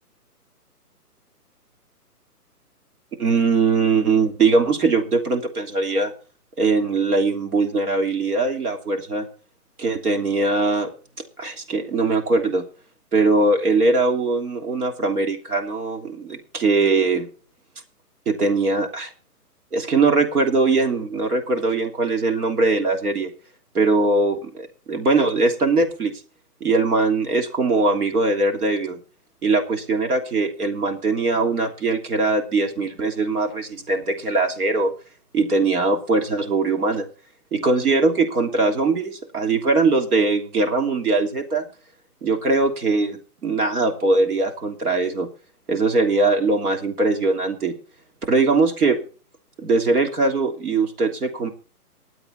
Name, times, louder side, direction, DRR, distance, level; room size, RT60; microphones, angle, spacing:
voice 1, 3.2-6.1 6.6-9.3 9.8-10.9 11.4-12.7 13.1-17.3 18.3-19.1 19.7-23.3 23.7-26.1 26.6-29.0 29.4-34.9 35.3-37.1 37.5-41.6 42.2-45.3 45.7-47.7 48.3-49.0 49.6-51.5, right 3 dB, 70° right, 4 dB, 3.1 m, -21 dB
20.0 x 7.8 x 4.3 m, 0.39 s
hypercardioid pair, 145°, 47 cm